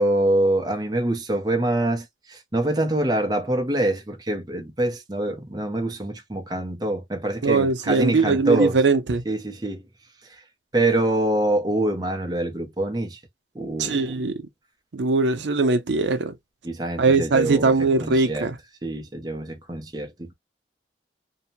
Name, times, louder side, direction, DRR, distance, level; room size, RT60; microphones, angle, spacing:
voice 1, 0.0-8.8 9.3-9.8 10.7-13.2 13.5-14.1 16.6-18.5 18.8-20.3, right 1 dB, 20° right, 0.6 m, -25 dB
voice 2, 7.4-9.2 13.8-14.5 14.9-16.3 17.0-18.6, right 3 dB, 80° right, 0.6 m, -21 dB
2.7 x 2.1 x 2.8 m
head